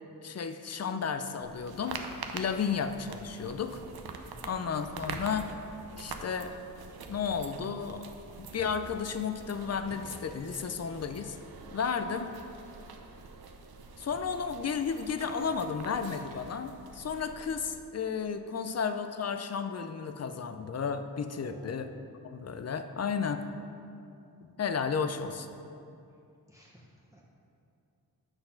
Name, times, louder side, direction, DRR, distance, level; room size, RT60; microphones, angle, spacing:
voice 1, 0.2-2.0 2.3-3.8 4.4-5.5 6.0-6.5 7.1-8.0 8.4-11.4 11.7-12.3 14.0-21.9 22.2-23.4 24.4-25.5, left 6 dB, 45° left, 9 dB, 0.5 m, -33 dB
sound 1, 1.4-17.8, right 4 dB, 85° right, 0.6 m, -45 dB
voice 2, 4.3-4.7 21.4-21.9 26.5-27.2, equal, 10° right, -3 dB, 0.8 m, -54 dB
sound 2, 5.1-5.5 6.9-7.4 7.9-9.1 9.4-10.7 11.4-12.0 12.3-13.3 14.1-14.3 14.6-14.7 15.1-16.6, right 1 dB, 60° right, 1.1 m, -54 dB
7.9 x 4.1 x 5.7 m, 2.6 s
wide cardioid pair, 70°, 37 cm